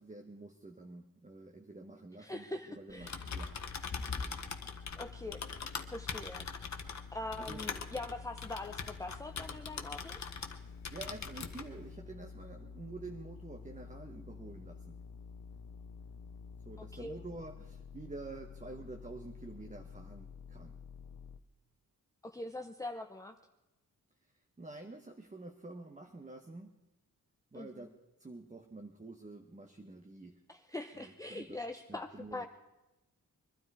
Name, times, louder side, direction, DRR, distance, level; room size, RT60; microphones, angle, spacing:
voice 1, 0.0-3.6 7.4-7.6 10.6-15.0 16.7-20.8 24.6-26.7 27.5-27.9 28.2-30.4 30.9-31.6 31.9-32.5, right 3 dB, 20° right, 4 dB, 1.1 m, -48 dB
voice 2, 2.2-3.2 5.0-5.4 5.9-6.5 7.1-10.2 16.8-17.2 22.2-23.3 27.5-27.9 30.5-32.5, left 2 dB, 10° left, 5 dB, 0.7 m, -43 dB
Typing, 2.9-10.6 10.8-11.7, left 5 dB, 50° left, 1.3 m, -42 dB
sound 1, 3.0-21.4, left 5 dB, 90° left, 0.8 m, -50 dB
22.5 x 12.5 x 4.8 m, 1.0 s
wide cardioid pair, 115°, 35 cm